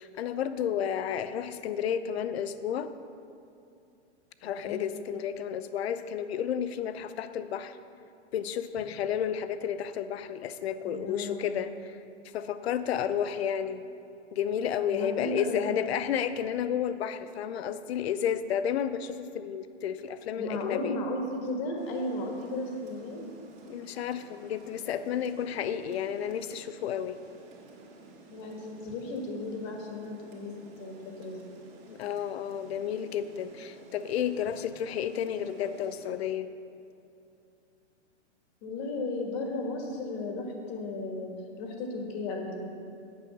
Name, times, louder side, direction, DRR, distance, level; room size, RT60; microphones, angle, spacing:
voice 1, 0.0-2.9 4.4-7.8 8.3-12.0 12.3-13.8 14.3-21.0 23.7-27.2 31.9-36.5, left 9 dB, 65° left, 12 dB, 0.6 m, -31 dB
voice 2, 10.8-11.6 14.9-15.8 20.4-23.2 28.3-30.5 30.8-31.4 38.6-42.7, left 2 dB, 35° left, 2 dB, 1.5 m, -35 dB
Rain, 21.8-36.1, right 2 dB, 40° right, 2.3 m, -53 dB
8.7 x 6.9 x 6.0 m, 2.6 s
hypercardioid pair, 145°, 35 cm